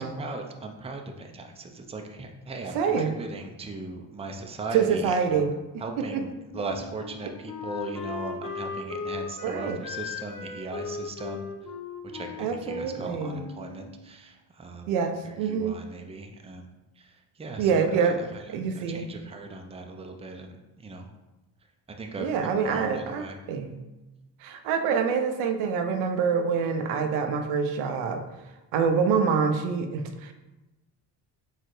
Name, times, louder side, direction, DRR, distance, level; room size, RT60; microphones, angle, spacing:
voice 1, 0.0-5.4 5.8-11.5 12.1-14.9 15.5-16.7 17.0-17.1 17.4-18.1 18.8-21.1 22.0-23.4, right 2 dB, 10° right, 4 dB, 0.6 m, -38 dB
voice 2, 2.7-3.2 4.7-5.5 6.0-6.2 7.2-7.3 9.4-9.8 12.4-13.4 14.9-15.8 17.6-18.2 18.5-19.1 22.2-23.8 24.4-28.2 28.7-30.3, right 6 dB, 75° right, 6 dB, 0.7 m, -26 dB
Wind instrument woodwind instrument, 6.5-14.0, left 5 dB, 40° left, 0.9 m, -38 dB
4.6 x 3.3 x 3.1 m, 1.0 s
hypercardioid pair, 55°, 49 cm